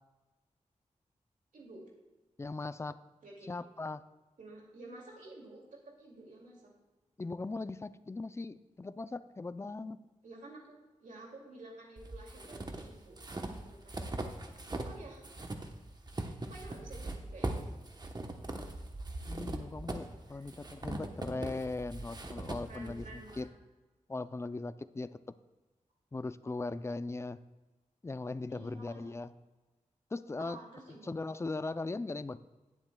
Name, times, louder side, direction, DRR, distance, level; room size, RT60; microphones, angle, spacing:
voice 1, 2.4-3.0 3.5-4.0 7.2-10.0 19.3-23.5 24.1-25.1 26.1-27.4 28.0-29.3 30.1-30.6 31.0-32.4, left 3 dB, 20° left, 13 dB, 0.4 m, -39 dB
voice 2, 4.4-6.7 10.2-14.1 14.8-15.2 16.5-17.7 20.3-20.4 22.6-23.5 28.5-29.2 30.4-31.1, right 2 dB, 85° right, -2 dB, 2.4 m, -51 dB
sound 1, 12.0-15.0 15.2-23.4, right 2 dB, 30° right, 1.0 m, -40 dB
18.5 x 7.5 x 2.3 m, 1.2 s
wide cardioid pair, 85°, 13 cm